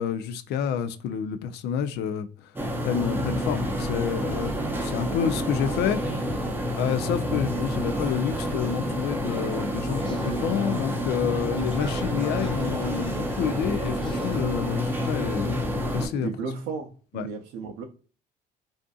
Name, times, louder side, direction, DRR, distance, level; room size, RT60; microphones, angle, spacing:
voice 1, 0.0-2.5 2.8-6.5 6.7-16.3 17.1-17.3, left 8 dB, 75° left, 0.4 m, -29 dB
sound 1, 2.6-16.1, equal, 10° right, 0.6 m, -28 dB
sound 2, 3.3-14.4, left 3 dB, 30° left, 0.7 m, -44 dB
voice 2, 16.2-17.8, right 5 dB, 85° right, 0.5 m, -34 dB
2.5 x 2.4 x 2.3 m
cardioid pair, 110°, 17 cm